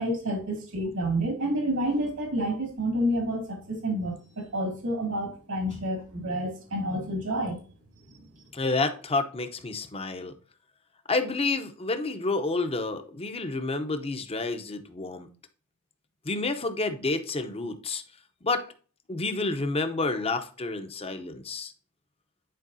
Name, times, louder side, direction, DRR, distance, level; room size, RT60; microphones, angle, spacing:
voice 1, 0.0-7.6, right 1 dB, 80° right, 2.2 m, -29 dB
voice 2, 8.5-10.3 11.1-15.3 16.2-18.0 18.4-18.7 19.1-21.7, left 3 dB, 25° left, 0.7 m, -29 dB
10.0 x 4.6 x 2.7 m
head